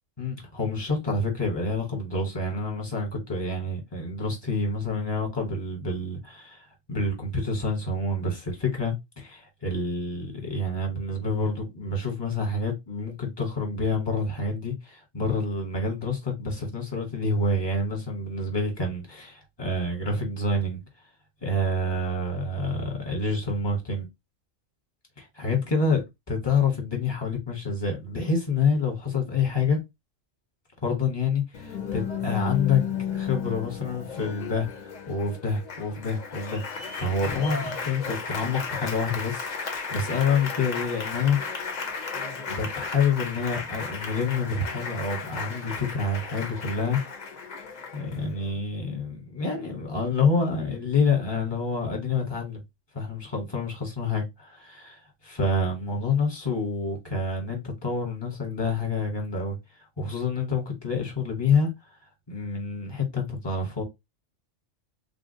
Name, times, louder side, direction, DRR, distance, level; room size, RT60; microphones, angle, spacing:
voice 1, 0.2-20.8 21.4-24.1 25.2-29.8 30.8-32.8 33.1-41.6 42.5-47.0 47.9-52.6 52.9-59.6 60.0-61.7 62.3-63.8, left 3 dB, 20° left, 1.1 m, -28 dB
Applause, 31.5-48.5, left 5 dB, 45° left, 0.6 m, -34 dB
3.5 x 2.3 x 2.7 m
omnidirectional pair, 1.3 m